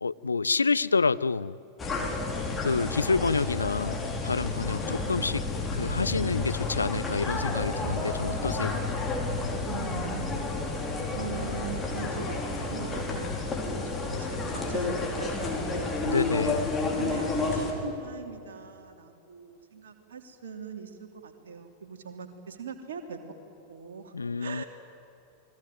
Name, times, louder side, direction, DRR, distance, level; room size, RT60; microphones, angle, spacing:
voice 1, 0.0-1.6 2.6-5.4 5.7-8.8 16.0-16.7 24.1-24.6, left 4 dB, 75° left, 18 dB, 0.5 m, -28 dB
sound 1, 1.8-17.7, left 3 dB, 15° left, 5.1 m, -31 dB
voice 2, 4.8-5.1 9.6-10.6 11.1-16.0 16.9-23.2 23.7-24.7, right 6 dB, 60° right, 4 dB, 3.1 m, -41 dB
29.0 x 21.0 x 9.2 m, 2.8 s
figure-of-eight pair, 90°, 0 cm